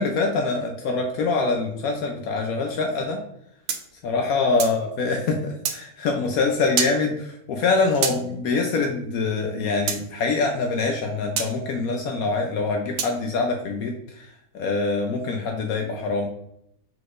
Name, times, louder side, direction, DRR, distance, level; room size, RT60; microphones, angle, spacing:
voice 1, 0.0-3.2 4.0-14.3 14.5-16.3, left 3 dB, 75° left, 3 dB, 1.1 m, -24 dB
sound 1, 3.7-4.8 5.6-5.8 6.8-7.0 8.0-8.2 9.9-10.0 11.4-11.5 13.0-13.2, right 7 dB, 70° right, 0.9 m, -26 dB
4.7 x 4.0 x 2.5 m, 0.76 s
omnidirectional pair, 1.6 m